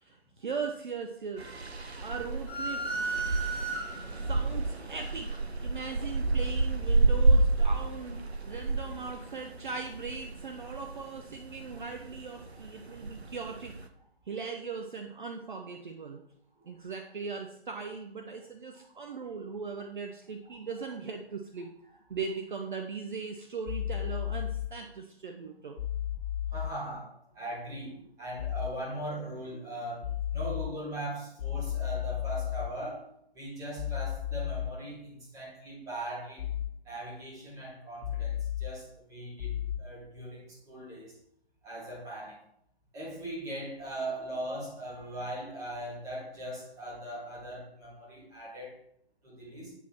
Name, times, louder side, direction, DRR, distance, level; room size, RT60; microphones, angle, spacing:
voice 1, 0.0-1.5 2.0-2.9 4.2-13.8 14.3-16.2 16.6-21.7 22.1-25.8, right 5 dB, 50° right, 4 dB, 0.6 m, -39 dB
sound 1, 1.4-13.8, right 2 dB, 90° right, 0.7 m, -30 dB
sound 2, 2.5-4.3, right 3 dB, 15° left, 0.5 m, -34 dB
sound 3, 23.6-24.7 25.8-26.7 28.4-28.7 30.0-30.7 31.4-32.7 33.8-34.7 36.4-36.7 38.0-38.7 39.4-39.8, left 11 dB, 45° left, 1.1 m, -33 dB
voice 2, 26.5-33.1 33.3-36.5 36.8-41.2 41.6-42.4 42.9-48.8 49.2-49.7, right 1 dB, 10° right, -5 dB, 1.5 m, -40 dB
8.1 x 3.0 x 4.1 m, 0.74 s
figure-of-eight pair, 140°, 31 cm